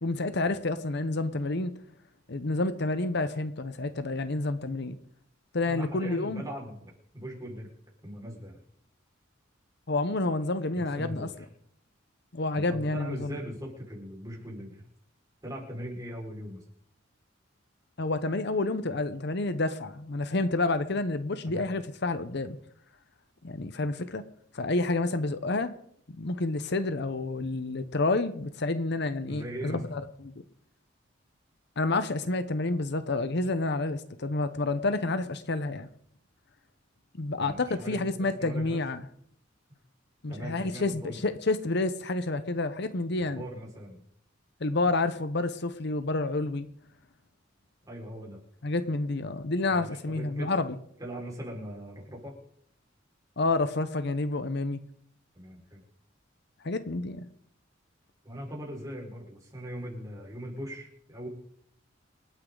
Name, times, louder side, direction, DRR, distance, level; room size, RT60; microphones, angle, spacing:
voice 1, 0.0-1.7 2.3-5.0 5.5-6.4 9.9-11.3 12.3-13.3 18.0-22.6 23.4-24.2 24.5-25.7 26.2-30.3 31.8-35.9 37.2-39.0 40.2-43.4 44.6-46.7 48.6-50.7 53.4-54.8 56.6-57.3, left 2 dB, 60° left, 11 dB, 0.9 m, -29 dB
voice 2, 5.7-7.7 8.0-8.6 10.7-11.3 12.5-14.9 15.4-16.6 21.4-21.7 29.3-29.8 37.4-38.8 40.3-41.2 43.2-44.0 47.9-48.4 49.7-50.5 51.0-52.3 55.3-55.8 58.2-61.3, equal, 20° right, -2 dB, 5.0 m, -40 dB
28.0 x 9.6 x 3.9 m, 0.69 s
head